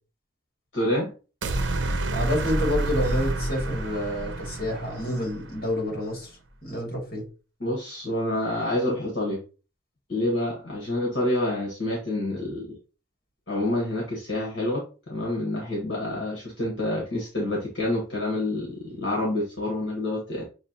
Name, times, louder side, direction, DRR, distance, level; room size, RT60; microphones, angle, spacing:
voice 1, 0.7-1.1 7.6-9.4 10.1-12.8 13.5-20.4, left 1 dB, 70° left, 1.3 m, -28 dB
sound 1, 1.4-5.7, right 2 dB, 80° right, 0.7 m, -29 dB
voice 2, 2.1-7.2, left 1 dB, 50° left, 2.4 m, -29 dB
6.3 x 2.8 x 2.8 m
head